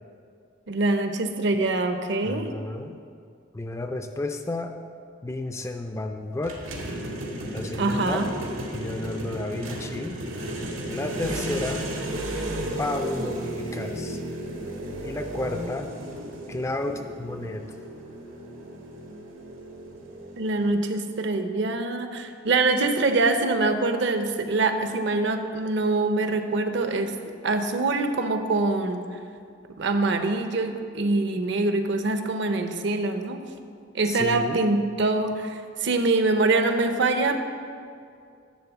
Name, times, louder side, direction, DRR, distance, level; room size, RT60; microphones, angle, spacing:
voice 1, 0.7-2.5 7.8-8.3 20.4-27.1 27.4-29.0 29.8-33.4 33.9-37.4, right 3 dB, 60° right, 7 dB, 0.6 m, -24 dB
voice 2, 2.2-3.0 3.5-4.8 5.2-6.6 7.5-8.3 8.7-10.2 10.9-11.9 12.8-14.2 15.0-15.9 16.5-17.6 34.0-34.6, left 2 dB, 15° left, 6 dB, 0.3 m, -32 dB
sound 1, 6.4-20.7, right 1 dB, 85° right, 1.4 m, -34 dB
10.5 x 3.6 x 7.1 m, 2.3 s
head